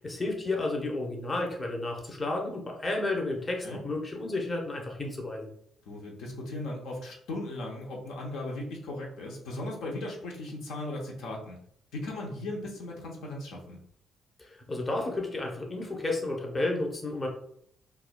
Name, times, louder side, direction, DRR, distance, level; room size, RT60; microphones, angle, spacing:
voice 1, 0.0-5.5 14.4-17.3, left 2 dB, 25° left, 0 dB, 0.8 m, -32 dB
voice 2, 5.9-11.6 11.9-13.8, left 2 dB, 85° left, -1 dB, 0.7 m, -37 dB
4.5 x 2.2 x 2.2 m, 0.68 s
cardioid pair, 90°, 0 cm